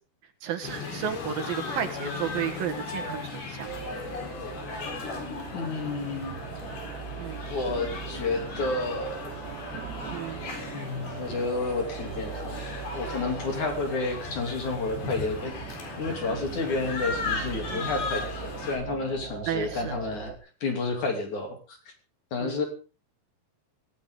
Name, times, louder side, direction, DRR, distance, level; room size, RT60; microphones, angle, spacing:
voice 1, 0.4-3.7 7.2-7.4 10.1-10.4 17.7-17.9 19.5-19.9 22.4-22.6, right 8 dB, 65° right, 5 dB, 3.1 m, -33 dB
sound 1, 0.6-18.8, left 4 dB, 70° left, 6.0 m, -37 dB
sound 2, 3.6-20.4, right 9 dB, 85° right, 3.4 m, -40 dB
voice 2, 5.5-6.4 7.5-9.4 10.7-15.5 16.0-20.3 20.6-21.8 22.3-22.7, left 3 dB, 50° left, 4 dB, 4.0 m, -30 dB
17.0 x 17.0 x 3.8 m, 0.35 s
omnidirectional pair, 4.8 m